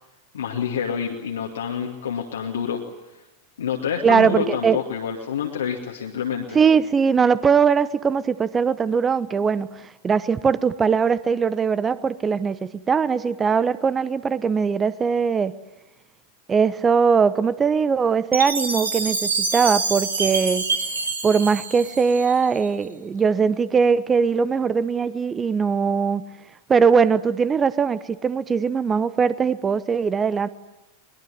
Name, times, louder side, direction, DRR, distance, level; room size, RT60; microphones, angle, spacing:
voice 1, 0.3-2.8 3.6-6.6, left 7 dB, 65° left, 1 dB, 2.3 m, -27 dB
voice 2, 4.0-4.8 6.5-15.5 16.5-20.7 21.2-26.2 26.7-30.5, right 6 dB, 20° right, 17 dB, 1.1 m, -20 dB
Chime, 18.3-22.6, right 3 dB, 75° right, 3.3 m, -26 dB
23.0 x 21.5 x 9.9 m, 0.96 s
figure-of-eight pair, 90°, 0 cm